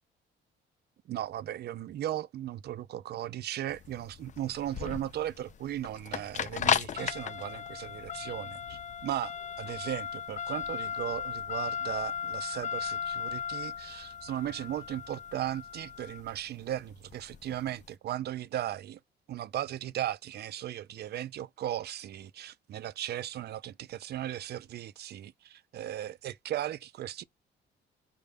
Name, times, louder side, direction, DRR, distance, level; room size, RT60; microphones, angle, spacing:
voice 1, 1.1-19.0 19.3-27.2, right 12 dB, 55° right, 0.4 m, -37 dB
sound 1, 3.7-17.8, left 8 dB, 40° left, 0.4 m, -36 dB
4.7 x 2.2 x 3.4 m
cardioid pair, 90°, 20 cm